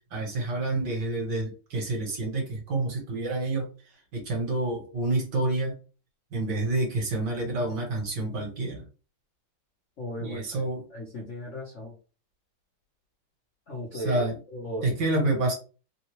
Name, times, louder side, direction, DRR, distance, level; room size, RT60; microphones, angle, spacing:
voice 1, 0.1-3.7 4.1-5.7 6.3-8.9 10.2-10.8 13.9-14.4 14.8-15.5, right 2 dB, 60° right, -2 dB, 1.8 m, -28 dB
voice 2, 10.0-11.9 13.7-14.2 14.5-14.9, left 1 dB, 50° left, -5 dB, 0.9 m, -37 dB
3.7 x 2.3 x 3.0 m, 0.35 s
omnidirectional pair, 2.2 m